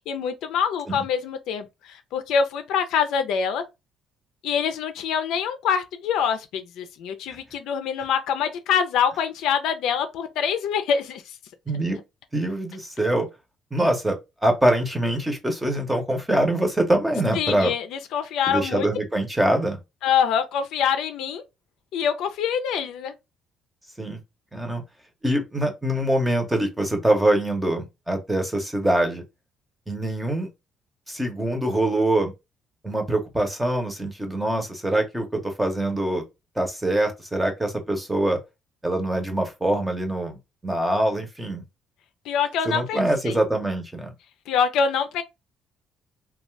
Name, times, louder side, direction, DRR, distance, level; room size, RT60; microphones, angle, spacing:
voice 1, 0.1-3.6 4.4-11.3 17.3-18.9 20.0-21.4 21.9-23.1 42.3-43.4 44.5-45.2, left 7 dB, 80° left, 0.5 m, -25 dB
voice 2, 11.7-12.0 12.3-13.3 13.7-17.7 18.5-19.8 24.0-24.2 24.5-24.8 25.2-29.2 29.9-30.5 31.1-32.3 32.8-36.2 36.6-38.4 38.8-40.4 40.6-41.6 42.7-44.1, right 1 dB, 5° right, 0.7 m, -24 dB
2.6 x 2.3 x 3.1 m
cardioid pair, 125°, 0 cm